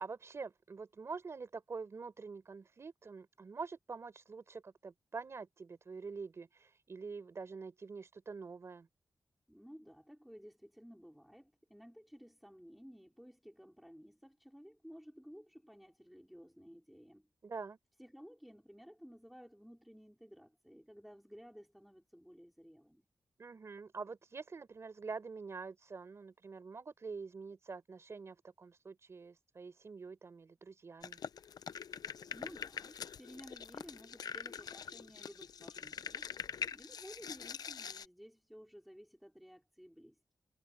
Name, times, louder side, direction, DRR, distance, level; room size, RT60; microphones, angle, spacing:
voice 1, 0.0-8.9 17.4-17.8 23.4-31.2, right 4 dB, 40° right, 4.1 m, -46 dB
voice 2, 9.5-17.3 18.0-23.1 32.3-36.3 36.7-40.3, equal, ahead, 4.6 m, -55 dB
sound 1, 31.0-38.1, left 7 dB, 70° left, 0.5 m, -44 dB
wide cardioid pair, 175°, 7 cm